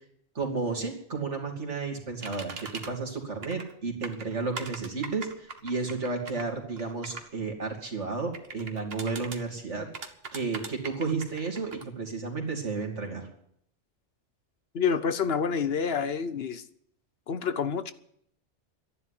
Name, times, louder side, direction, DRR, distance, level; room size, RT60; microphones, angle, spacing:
voice 1, 0.3-9.9 10.3-13.3, right 4 dB, 75° right, 2 dB, 3.1 m, -32 dB
sound 1, 2.2-2.9 3.4-3.7 4.0-7.3 8.3-9.4 9.9-11.8, right 4 dB, 55° right, 1.5 m, -40 dB
voice 2, 14.7-16.6 17.3-17.9, left 6 dB, 60° left, 12 dB, 1.0 m, -28 dB
12.5 x 11.0 x 9.9 m, 0.70 s
omnidirectional pair, 1.2 m